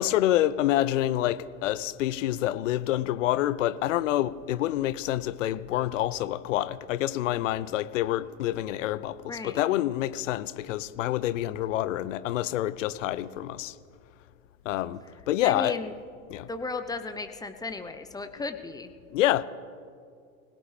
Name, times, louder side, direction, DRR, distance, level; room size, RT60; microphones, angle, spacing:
voice 1, 0.0-13.8 14.6-15.8 16.3-16.5 19.1-19.4, left 13 dB, 60° left, 0.7 m, -27 dB
voice 2, 9.3-9.6 15.4-15.9 16.5-18.9, left 3 dB, 10° left, 0.8 m, -35 dB
24.5 x 17.0 x 3.4 m
figure-of-eight pair, 80°, 42 cm